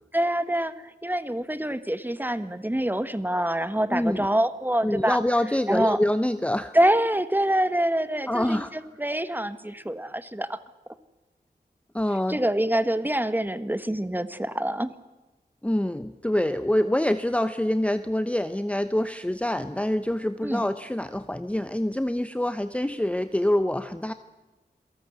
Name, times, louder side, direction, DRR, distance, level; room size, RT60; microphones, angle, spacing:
voice 1, 0.1-5.2 5.7-6.0 6.7-10.6 12.3-14.9 20.4-20.6, right 1 dB, 10° right, 13 dB, 1.4 m, -25 dB
voice 2, 3.9-4.3 4.8-6.7 8.3-8.7 11.9-12.4 15.6-24.1, left 1 dB, 10° left, 11 dB, 0.9 m, -25 dB
27.0 x 18.0 x 8.0 m, 1.1 s
wide cardioid pair, 65°, 16 cm